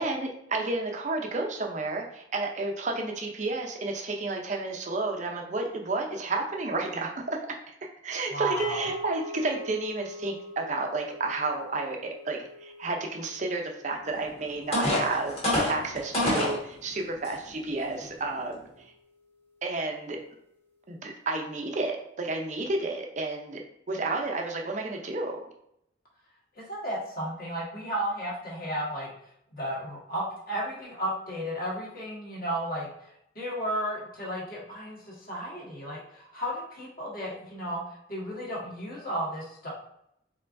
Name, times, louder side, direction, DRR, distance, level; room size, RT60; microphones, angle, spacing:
voice 1, 0.0-7.4 8.0-18.9 19.6-20.2 20.9-23.6 23.9-25.4, right 3 dB, 40° right, 2 dB, 0.6 m, -31 dB
voice 2, 8.3-8.8 26.7-29.1 29.5-32.9 33.3-37.8 38.1-39.7, right 1 dB, 50° left, -6 dB, 1.6 m, -33 dB
sound 1, 8.6-18.9, equal, 10° left, 0.6 m, -44 dB
sound 2, 14.1-14.2 14.7-16.6 17.2-17.3 17.9-18.1, left 1 dB, 30° left, 1.5 m, -26 dB
4.5 x 3.7 x 2.5 m, 0.74 s
head